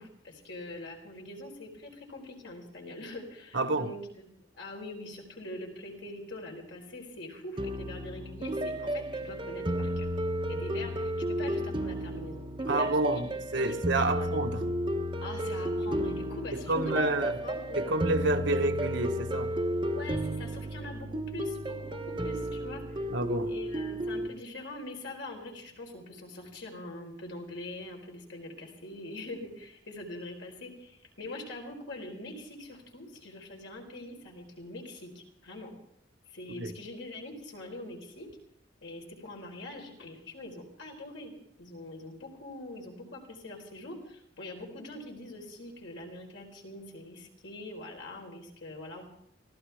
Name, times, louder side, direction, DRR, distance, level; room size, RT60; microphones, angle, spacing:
voice 1, 0.0-4.2 4.5-10.1 10.5-13.8 14.1-14.3 15.2-17.0 17.4-18.0 19.9-23.1 23.4-35.7 36.3-38.3 38.8-41.3 41.6-49.0, left 1 dB, 70° left, 4.2 m, -43 dB
voice 2, 3.5-3.9 12.7-14.6 16.5-17.3 17.7-19.5 23.1-23.5 36.5-36.7, right 2 dB, 70° right, 1.3 m, -29 dB
sound 1, 7.6-24.3, right 1 dB, 25° right, 0.9 m, -33 dB
24.5 x 15.5 x 3.5 m
head